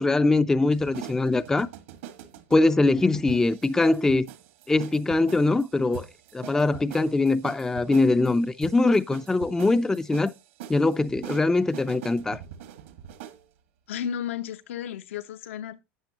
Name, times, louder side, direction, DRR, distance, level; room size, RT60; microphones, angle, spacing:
voice 1, 0.0-1.7 2.5-4.3 4.7-6.1 6.3-10.3 10.7-12.4, left 2 dB, 10° left, 0.4 m, -22 dB
sound 1, 0.7-13.4, right 10 dB, 80° right, 1.8 m, -43 dB
voice 2, 13.9-15.8, left 9 dB, 85° left, 1.0 m, -33 dB
11.5 x 8.5 x 2.9 m
supercardioid pair, 125°, 7 cm